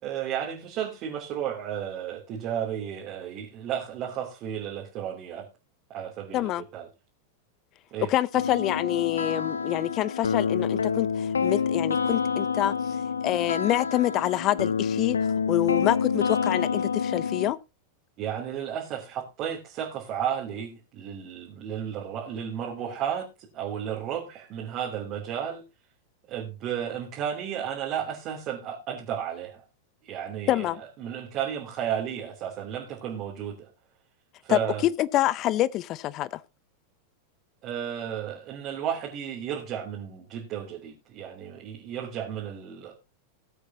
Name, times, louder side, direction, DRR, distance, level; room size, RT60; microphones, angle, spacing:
voice 1, 0.0-5.5 5.9-6.9 7.9-8.1 18.2-25.6 26.3-29.6 30.0-33.7 34.4-34.8 37.6-42.9, right 9 dB, 35° right, 3.1 m, -33 dB
voice 2, 6.3-6.6 8.1-12.7 13.2-15.2 15.5-17.6 30.5-30.8 34.5-34.6 35.0-36.4, left 14 dB, 35° left, 0.7 m, -26 dB
sound 1, 8.3-17.5, left 6 dB, 70° left, 0.8 m, -28 dB
19.5 x 8.3 x 2.8 m
figure-of-eight pair, 90°, 0 cm